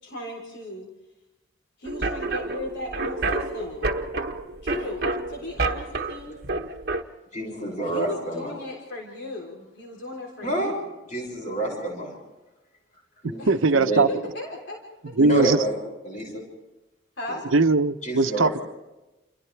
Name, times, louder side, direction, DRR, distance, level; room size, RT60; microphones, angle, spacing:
voice 1, 0.0-0.9 1.8-3.9 4.6-6.4 7.8-10.8 13.4-13.5 14.1-14.8 15.1-15.2 17.2-17.5, left 2 dB, 60° left, -1 dB, 3.7 m, -36 dB
sound 1, 1.9-7.0, right 3 dB, 50° right, 1.2 m, -29 dB
voice 2, 7.3-8.6 10.4-10.7 11.1-12.1 13.2-14.1 15.2-15.8 16.0-16.4 17.3-17.4 18.0-18.6, right 1 dB, 35° left, 0 dB, 6.4 m, -28 dB
voice 3, 13.5-14.1 15.2-15.6 17.5-18.6, right 3 dB, 80° right, 11 dB, 0.8 m, -20 dB
29.0 x 28.5 x 3.4 m, 1.0 s
head